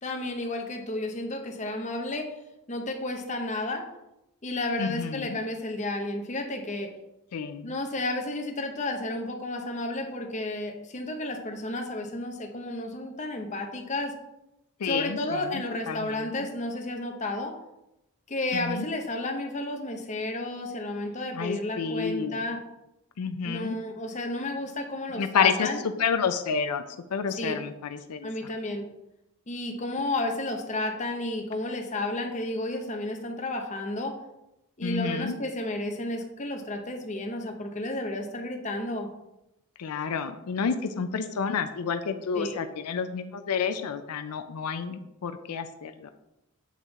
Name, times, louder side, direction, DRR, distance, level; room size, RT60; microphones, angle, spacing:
voice 1, 0.0-2.3 2.7-3.8 4.4-6.9 7.6-14.1 14.8-17.5 18.3-22.6 23.4-25.8 27.4-27.6 28.2-28.8 29.5-34.1 34.8-39.1 42.3-42.6, left 2 dB, 30° left, 3 dB, 0.8 m, -32 dB
voice 2, 4.8-5.4 7.3-7.8 14.8-16.5 18.5-18.9 21.3-22.4 23.2-23.8 25.1-25.7 26.0-26.8 27.1-28.3 34.8-35.3 39.8-46.1, left 6 dB, 85° left, 9 dB, 0.4 m, -30 dB
7.4 x 3.7 x 4.0 m, 0.90 s
head